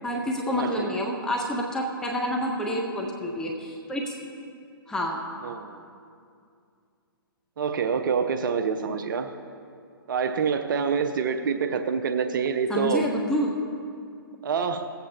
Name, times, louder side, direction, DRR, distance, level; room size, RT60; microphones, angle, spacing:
voice 1, 0.0-4.1 4.9-5.2 12.7-13.5, equal, 5° left, 0 dB, 0.8 m, -28 dB
voice 2, 0.5-0.9 5.4-5.9 7.6-9.3 10.1-13.0 14.4-14.9, right 6 dB, 55° right, 7 dB, 0.6 m, -26 dB
17.5 x 7.9 x 2.9 m, 2.4 s
figure-of-eight pair, 125°, 12 cm